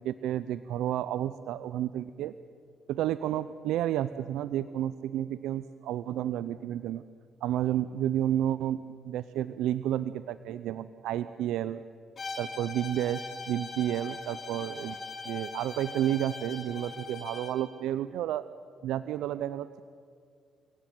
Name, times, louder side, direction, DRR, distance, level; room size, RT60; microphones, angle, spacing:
voice 1, 0.0-2.3 2.9-7.0 7.4-11.8 12.4-15.0 15.2-18.4 18.8-19.8, right 11 dB, 90° right, 14 dB, 0.6 m, -31 dB
Bowed string instrument, 12.2-17.6, left 3 dB, 40° left, 5.0 m, -41 dB
29.0 x 17.5 x 9.3 m, 2.3 s
cardioid pair, 90°, 0 cm